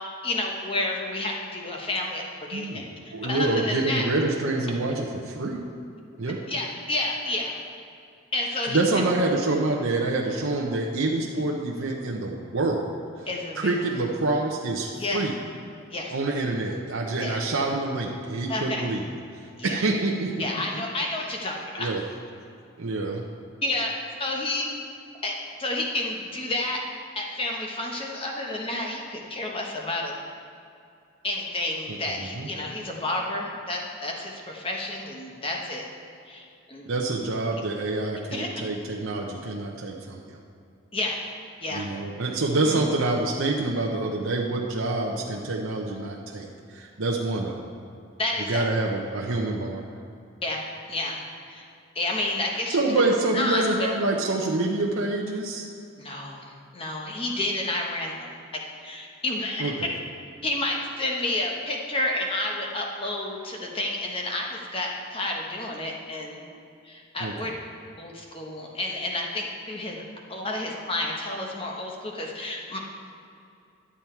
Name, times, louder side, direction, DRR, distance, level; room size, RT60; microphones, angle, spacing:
voice 1, 0.2-2.2 2.5-4.0 6.5-7.5 8.3-9.1 13.3-13.8 15.0-15.3 15.9-16.1 17.2-17.4 18.5-18.9 19.6-19.8 20.4-21.9 23.6-24.7 25.2-26.8 27.1-30.1 31.2-35.8 36.3-36.9 38.3-38.5 40.9-41.2 41.6-41.9 42.6-42.8 48.2-48.6 50.4-51.2 51.5-51.7 51.9-52.8 53.3-53.6 56.0-56.4 56.7-59.7 60.4-66.4 66.8-67.5 68.0-70.0 70.3-72.8, left 2 dB, 25° left, 0 dB, 1.1 m, -30 dB
voice 2, 2.5-5.6 6.2-6.4 8.7-13.3 13.5-15.3 16.1-19.1 19.3-20.3 20.7-20.8 21.8-22.0 22.8-23.2 31.9-32.5 36.9-40.4 41.7-47.7 48.5-49.8 52.7-55.7 59.6-59.9 67.2-67.5, right 2 dB, 70° right, -1 dB, 0.8 m, -27 dB
11.5 x 7.1 x 4.5 m, 2.5 s
head